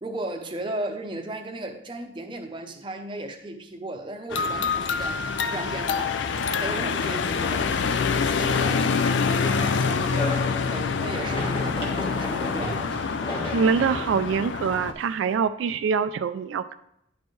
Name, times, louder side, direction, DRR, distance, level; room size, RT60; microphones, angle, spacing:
voice 1, 0.0-12.9, right 2 dB, 25° right, 3 dB, 0.7 m, -36 dB
sound 1, 4.3-14.9, left 5 dB, 75° left, 0.4 m, -26 dB
sound 2, 8.2-15.3, left 1 dB, 30° left, 1.3 m, -35 dB
voice 2, 13.5-16.7, right 6 dB, 80° right, 10 dB, 0.3 m, -24 dB
10.0 x 4.3 x 3.2 m, 0.77 s
head